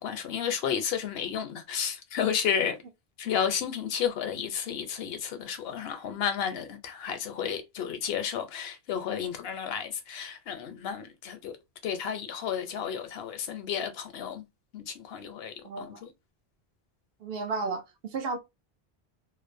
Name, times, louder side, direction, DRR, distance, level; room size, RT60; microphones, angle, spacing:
voice 1, 0.0-2.8 3.2-11.5 11.8-14.4 14.7-16.1, left 8 dB, 75° left, 0.8 m, -32 dB
voice 2, 15.6-16.0 17.2-18.4, right 4 dB, 70° right, 0.8 m, -33 dB
2.5 x 2.0 x 2.5 m
omnidirectional pair, 1.0 m